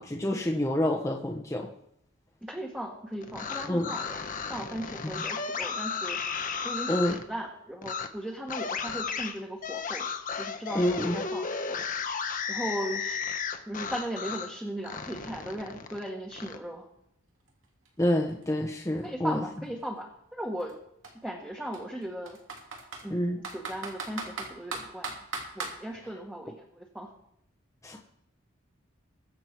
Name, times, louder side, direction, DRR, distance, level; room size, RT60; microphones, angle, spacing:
voice 1, 0.0-1.7 3.7-3.9 6.9-7.2 10.7-11.2 18.0-19.4 23.1-23.4 27.8-28.0, left 1 dB, 15° left, -1 dB, 1.1 m, -27 dB
voice 2, 2.4-4.2 4.5-6.2 6.6-10.1 10.4-11.9 12.5-13.2 13.7-16.8 19.0-20.8 21.2-22.4 23.0-25.1 25.5-27.1, equal, 5° right, -2 dB, 1.6 m, -37 dB
sound 1, 3.2-7.2 7.8-8.1 8.5-14.5 14.8-16.6, left 5 dB, 40° left, 1.0 m, -34 dB
Computer keyboard, 17.5-17.6 17.9-19.8 20.6-20.7 21.0-21.1 21.7-23.1 23.4-25.8, right 4 dB, 70° right, 2.9 m, -38 dB
22.0 x 7.6 x 4.6 m, 0.76 s
head